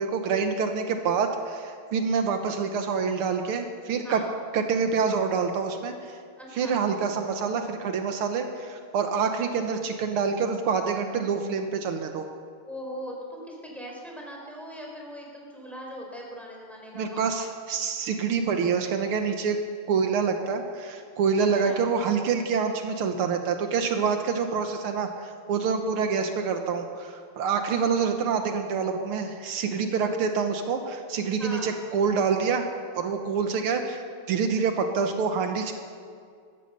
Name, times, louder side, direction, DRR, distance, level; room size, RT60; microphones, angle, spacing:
voice 1, 0.0-4.2 4.5-6.2 6.6-12.3 16.9-19.6 19.9-32.7 33.0-34.0 34.3-35.7, right 5 dB, 80° right, 6 dB, 1.9 m, -26 dB
voice 2, 4.0-4.3 6.4-6.8 12.6-17.3 21.4-21.9 31.4-31.8, equal, ahead, -1 dB, 3.7 m, -40 dB
15.0 x 14.5 x 6.7 m, 2.2 s
omnidirectional pair, 2.4 m